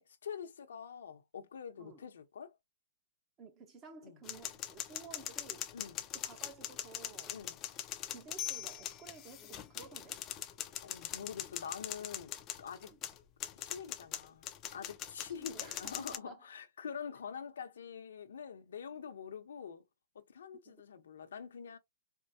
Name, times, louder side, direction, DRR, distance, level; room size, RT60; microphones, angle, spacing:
voice 1, 0.0-2.6 4.0-4.2 5.7-6.0 7.3-7.6 10.8-12.3 12.6-12.9 13.6-19.9 20.1-21.8, left 7 dB, 85° left, 0.8 m, -46 dB
voice 2, 3.4-5.7 6.1-7.4 8.1-10.2 12.8-13.0 15.4-16.5 20.6-20.8, right 4 dB, 25° right, 1.0 m, -53 dB
sound 1, 4.2-16.2, left 11 dB, 30° left, 0.5 m, -42 dB
4.4 x 2.2 x 2.7 m
hypercardioid pair, 145°, 0 cm